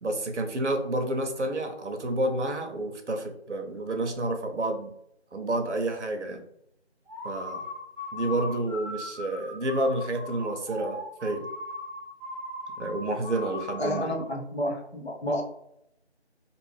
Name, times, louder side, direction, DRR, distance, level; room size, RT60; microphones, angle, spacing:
voice 1, 0.0-4.9 5.3-6.4 7.2-7.6 8.1-11.5 12.8-14.1, right 1 dB, 90° right, 4 dB, 0.8 m, -29 dB
sound 1, 7.1-14.3, left 2 dB, 30° left, 1.0 m, -38 dB
voice 2, 13.8-15.4, equal, 65° left, 1 dB, 0.8 m, -30 dB
2.6 x 2.5 x 3.1 m, 0.76 s
figure-of-eight pair, 180°, 34 cm